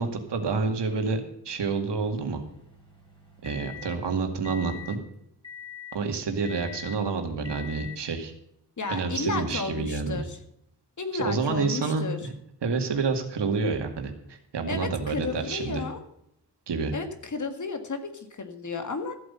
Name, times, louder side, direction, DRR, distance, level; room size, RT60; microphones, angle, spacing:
voice 1, 0.0-2.4 3.4-5.0 5.9-8.3 8.9-10.2 11.1-12.3 12.6-15.8 16.7-16.9, right 4 dB, 80° right, 4 dB, 2.2 m, -28 dB
sound 1, 1.9-4.0 4.4-5.0 5.4-6.0 6.4-7.0 7.4-8.0, left 8 dB, 10° left, 3.8 m, -43 dB
voice 2, 8.8-10.4 11.0-12.2 14.7-16.0 16.9-19.2, left 4 dB, 45° left, 7 dB, 1.9 m, -33 dB
14.0 x 8.0 x 5.6 m, 0.77 s
wide cardioid pair, 100°, 41 cm